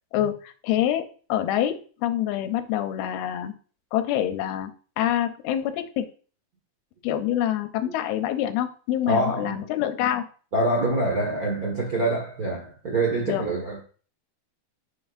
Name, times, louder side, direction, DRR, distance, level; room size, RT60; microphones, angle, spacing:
voice 1, 0.1-3.5 3.9-4.7 5.0-6.1 7.0-10.3 13.3-13.4, left 11 dB, 85° left, 2.7 m, -26 dB
voice 2, 9.1-9.7 10.5-13.8, right 1 dB, 60° right, 0.9 m, -25 dB
9.2 x 6.2 x 2.6 m
omnidirectional pair, 4.4 m